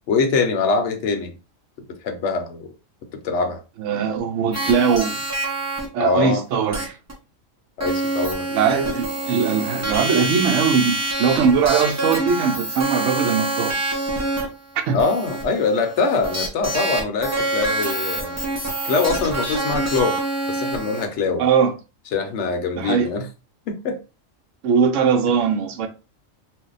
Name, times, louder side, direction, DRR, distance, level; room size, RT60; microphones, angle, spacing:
voice 1, 0.1-1.4 2.0-2.7 3.2-3.6 6.0-6.4 7.8-8.5 8.7-8.9 14.9-18.4 18.8-20.2 20.5-21.4 22.1-23.2 23.7-24.0, left 4 dB, 65° left, 0.9 m, -23 dB
voice 2, 3.8-5.2 5.9-7.0 8.5-13.8 14.9-15.0 21.4-21.7 22.8-23.1 24.6-25.9, right 6 dB, 75° right, 0.9 m, -20 dB
sound 1, 4.5-5.9 6.7-6.8 7.1-7.2 7.8-21.1, right 2 dB, 20° right, 0.4 m, -26 dB
2.6 x 2.1 x 3.8 m
omnidirectional pair, 1.3 m